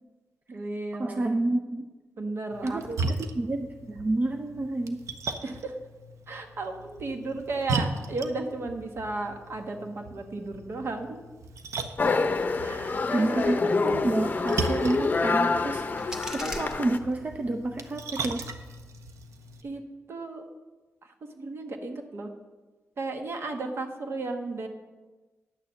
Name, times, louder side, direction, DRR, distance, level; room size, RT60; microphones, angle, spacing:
voice 1, 0.5-1.3 2.2-3.2 5.4-5.7 6.3-11.2 12.6-13.5 19.6-19.8 20.1-20.4 21.0-22.3 23.0-24.7, right 3 dB, 55° right, 4 dB, 1.3 m, -34 dB
voice 2, 1.0-1.9 2.6-2.9 3.2-5.0 13.1-18.4, right 2 dB, 30° right, 5 dB, 0.5 m, -29 dB
Splash splatter, 2.5-19.6, right 3 dB, 90° right, 0.8 m, -37 dB
sound 1, 12.0-17.0, left 4 dB, 35° left, 0.7 m, -27 dB
sound 2, 15.9-17.5, equal, 10° right, 1.4 m, -41 dB
10.0 x 6.7 x 6.9 m, 1.2 s
wide cardioid pair, 120°, 5 cm